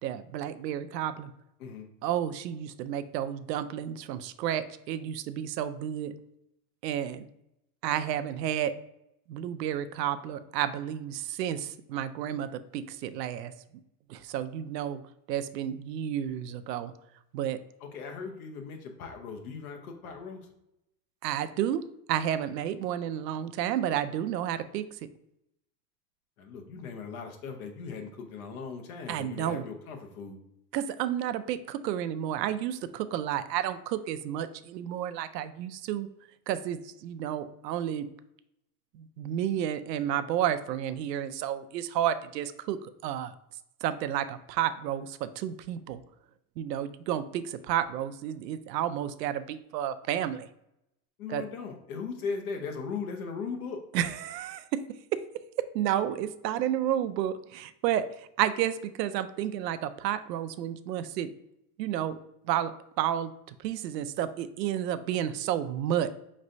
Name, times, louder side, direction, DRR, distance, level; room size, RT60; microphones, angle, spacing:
voice 1, 0.0-1.3 2.0-6.1 6.8-7.3 7.8-8.7 9.3-13.5 14.1-15.0 15.3-16.9 17.3-17.6 21.2-25.0 29.1-29.6 30.7-36.1 36.5-38.1 38.9-43.3 43.8-46.0 46.6-50.5 51.3-51.4 53.9-54.8 55.1-55.2 55.6-61.3 61.8-62.2 62.4-62.7 63.0-66.1, right 10 dB, 80° right, 12 dB, 0.5 m, -31 dB
voice 2, 17.8-20.5 26.4-30.4 51.2-53.8, left 5 dB, 60° left, 5 dB, 0.9 m, -38 dB
5.2 x 3.1 x 2.6 m, 0.81 s
supercardioid pair, 165°, 49 cm